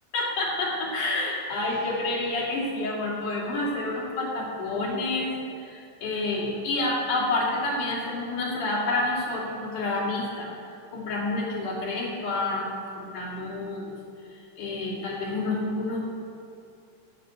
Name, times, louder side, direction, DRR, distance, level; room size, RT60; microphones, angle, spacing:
voice 1, 0.1-10.5 10.9-13.9 14.6-16.0, left 2 dB, 70° left, -4 dB, 3.9 m, -29 dB
14.5 x 5.5 x 7.9 m, 2.6 s
omnidirectional pair, 3.7 m